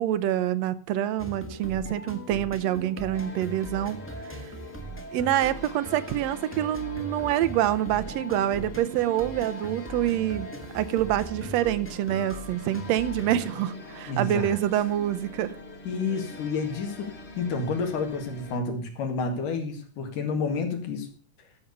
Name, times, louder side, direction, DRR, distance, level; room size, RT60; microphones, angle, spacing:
voice 1, 0.0-4.0 5.1-15.5, right 12 dB, 75° right, 13 dB, 1.6 m, -26 dB
sound 1, 1.2-16.5, right 1 dB, 10° left, 0.6 m, -40 dB
sound 2, 3.1-18.6, left 2 dB, 60° left, 0.6 m, -46 dB
voice 2, 14.1-14.6 15.9-21.1, left 4 dB, 85° left, 4 dB, 3.6 m, -30 dB
12.5 x 6.7 x 6.9 m, 0.43 s
omnidirectional pair, 3.7 m